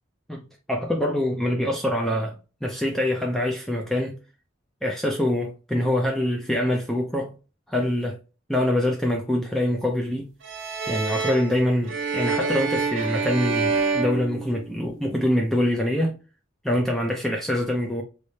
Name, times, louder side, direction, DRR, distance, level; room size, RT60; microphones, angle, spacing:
voice 1, 0.3-4.2 4.8-7.3 7.7-8.2 8.5-10.3 10.9-16.2 16.6-18.0, left 1 dB, ahead, 0.4 m, -25 dB
sound 1, 10.4-15.0, right 4 dB, 70° right, 1.0 m, -27 dB
3.2 x 3.2 x 2.7 m
head